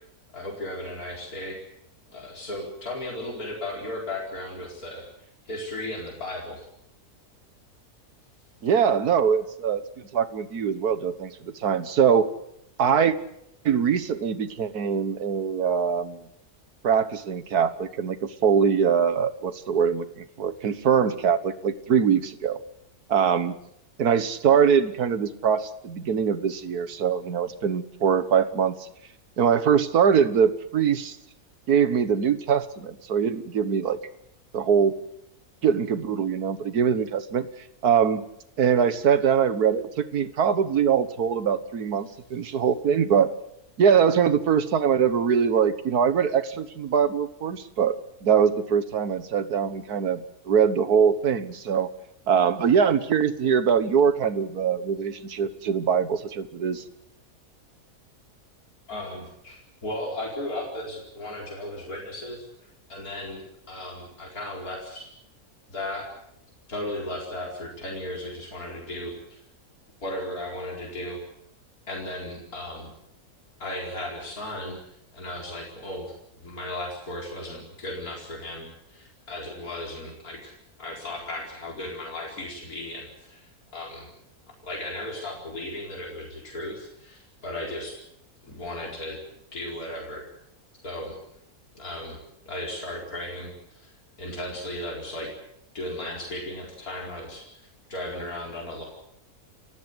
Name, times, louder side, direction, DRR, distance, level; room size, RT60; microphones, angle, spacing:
voice 1, 0.3-1.6 2.1-5.1 5.4-6.6 58.9-62.4 62.9-65.1 65.7-66.1 66.7-69.4 70.0-71.2 71.9-72.9 73.6-74.8 75.1-80.5 80.8-84.1 84.6-88.0 88.4-89.2 89.5-90.3 90.8-91.2 91.8-92.2 92.5-95.3 95.7-97.5 97.9-98.8, left 1 dB, 70° left, -1 dB, 5.1 m, -35 dB
voice 2, 8.6-12.3 12.8-13.2 13.7-16.2 16.8-22.6 23.1-23.5 24.0-28.9 29.4-31.2 31.7-34.0 34.5-34.9 35.6-37.5 37.8-38.2 38.6-43.3 43.8-48.0 48.2-51.9 52.3-56.8, right 7 dB, 80° right, 13 dB, 1.8 m, -23 dB
29.5 x 15.5 x 8.0 m, 0.76 s
omnidirectional pair, 1.6 m